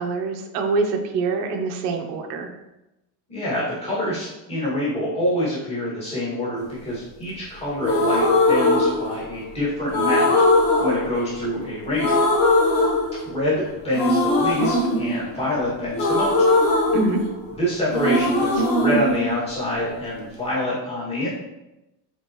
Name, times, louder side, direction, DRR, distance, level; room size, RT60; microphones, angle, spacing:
voice 1, 0.0-2.5 16.9-17.2, right 3 dB, 85° right, 3 dB, 1.1 m, -24 dB
voice 2, 3.3-12.3 13.3-16.3 17.5-21.3, left 1 dB, 15° left, -10 dB, 2.2 m, -26 dB
sound 1, 7.8-9.5 9.9-11.7 12.0-13.6 13.9-17.6 17.9-20.0, left 2 dB, 50° left, 1.2 m, -20 dB
8.3 x 3.9 x 3.1 m, 0.95 s
cardioid pair, 175°, 45 cm